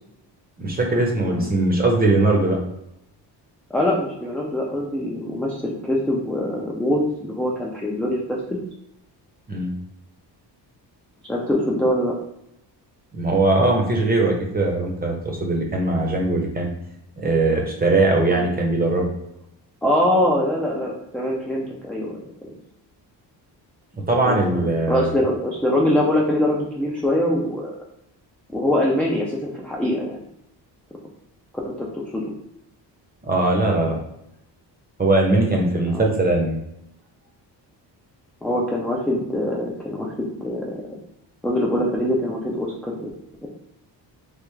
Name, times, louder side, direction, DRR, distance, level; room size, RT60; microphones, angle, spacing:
voice 1, 0.6-2.6 9.5-9.7 13.1-16.7 17.2-19.1 24.1-25.1 33.3-34.0 35.0-36.6, right 2 dB, 20° right, 0 dB, 0.7 m, -20 dB
voice 2, 1.2-1.6 3.7-8.6 11.3-12.2 18.2-18.5 19.8-22.2 24.2-27.8 28.5-30.2 31.6-32.3 35.9-36.1 38.4-40.8 41.4-43.1 43.4-43.5, left 1 dB, 5° left, -4 dB, 0.4 m, -23 dB
3.4 x 2.4 x 3.1 m, 0.82 s
cardioid pair, 130°, 43 cm